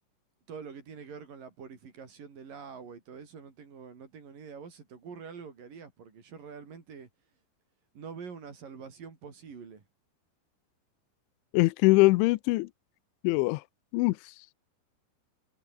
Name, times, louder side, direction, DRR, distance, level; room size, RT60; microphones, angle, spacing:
voice 1, 0.5-7.1 7.9-9.8, right 6 dB, 45° right, 5.7 m, -45 dB
voice 2, 11.5-12.7 13.2-13.6 13.9-14.3, left 22 dB, 80° left, 2.9 m, -23 dB
omnidirectional pair, 5.5 m